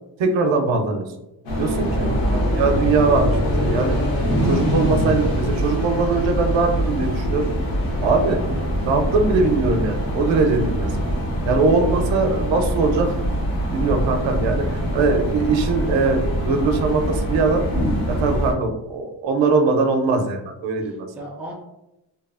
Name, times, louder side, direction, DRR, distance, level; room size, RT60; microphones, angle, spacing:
voice 1, 0.2-1.1 1.6-2.1 2.5-4.0 4.4-7.5 8.0-8.4 8.9-11.1 11.5-13.1 13.7-17.6 18.1-21.1, right 4 dB, 80° right, 5 dB, 0.6 m, -21 dB
sound 1, 1.5-18.5, equal, 70° left, 0.9 m, -23 dB
voice 2, 11.5-12.0 21.2-21.5, right 1 dB, 5° right, -2 dB, 0.4 m, -37 dB
2.8 x 2.3 x 2.3 m, 0.92 s
wide cardioid pair, 135°, 45 cm